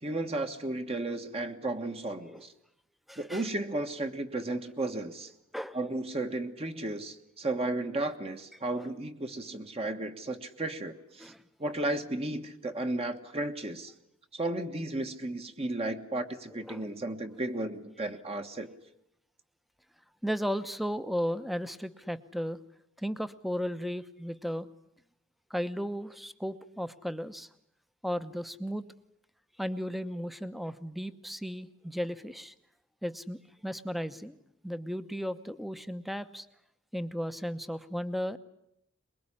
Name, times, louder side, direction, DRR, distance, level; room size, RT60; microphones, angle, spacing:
voice 1, 0.0-2.5 3.2-5.3 5.7-11.3 11.6-13.9 14.3-18.7, right 2 dB, 30° right, 6 dB, 1.4 m, -34 dB
voice 2, 3.1-3.4 5.5-5.8 8.7-8.9 11.2-11.4 16.5-16.8 20.2-22.6 23.0-24.7 25.5-27.5 28.0-28.8 29.6-32.5 33.0-34.4 34.6-36.5 36.9-38.4, equal, ahead, 12 dB, 0.9 m, -35 dB
23.0 x 22.0 x 9.9 m, 0.79 s
head